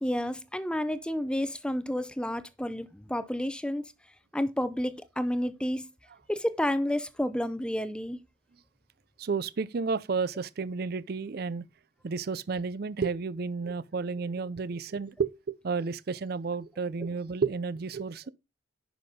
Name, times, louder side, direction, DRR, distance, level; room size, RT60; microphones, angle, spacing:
voice 1, 0.0-3.8 4.3-5.9 6.3-8.2, left 1 dB, 5° left, 0.6 m, -30 dB
voice 2, 9.2-11.7 12.0-18.3, right 5 dB, 55° right, 0.5 m, -32 dB
10.5 x 5.9 x 3.6 m
head